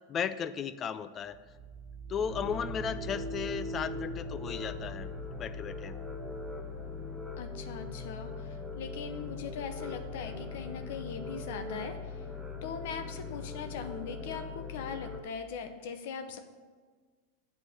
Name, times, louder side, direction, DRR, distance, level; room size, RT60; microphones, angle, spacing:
voice 1, 0.1-1.4 2.1-6.0, left 7 dB, 35° left, 13 dB, 0.5 m, -35 dB
sound 1, 1.2-14.4, right 2 dB, 70° right, 1.3 m, -45 dB
sound 2, 2.3-15.2, left 5 dB, 10° left, 1.0 m, -41 dB
voice 2, 7.4-12.2 12.6-16.4, left 6 dB, 65° left, 7 dB, 0.8 m, -40 dB
8.1 x 4.7 x 6.7 m, 1.5 s
hypercardioid pair, 95°, 0 cm